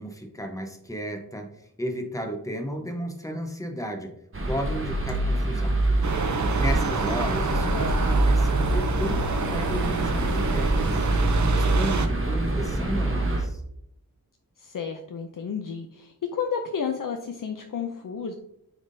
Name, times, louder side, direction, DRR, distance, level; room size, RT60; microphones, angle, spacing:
voice 1, 0.0-1.5 1.8-4.1 4.5-5.8 6.3-11.0 11.4-13.6, equal, 10° left, 4 dB, 0.9 m, -33 dB
sound 1, 4.3-13.4, right 1 dB, 35° right, 1.1 m, -25 dB
sound 2, 6.0-12.1, right 4 dB, 50° right, 0.6 m, -27 dB
voice 2, 7.6-8.0 14.6-18.3, left 6 dB, 60° left, 4 dB, 0.6 m, -31 dB
9.9 x 3.6 x 2.7 m, 0.75 s
wide cardioid pair, 85°, 37 cm